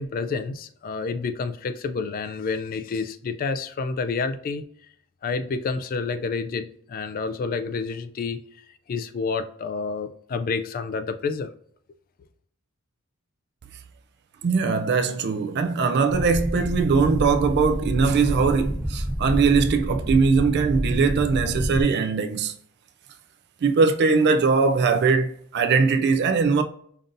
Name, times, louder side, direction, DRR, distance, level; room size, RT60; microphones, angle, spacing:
voice 1, 0.0-4.6 5.2-8.4 8.9-11.5, left 4 dB, 40° left, 0.3 m, -29 dB
voice 2, 14.4-22.5 23.6-26.6, right 4 dB, 50° right, 0.3 m, -21 dB
sound 1, 16.1-21.8, equal, 15° right, 0.7 m, -28 dB
5.2 x 2.6 x 2.5 m
head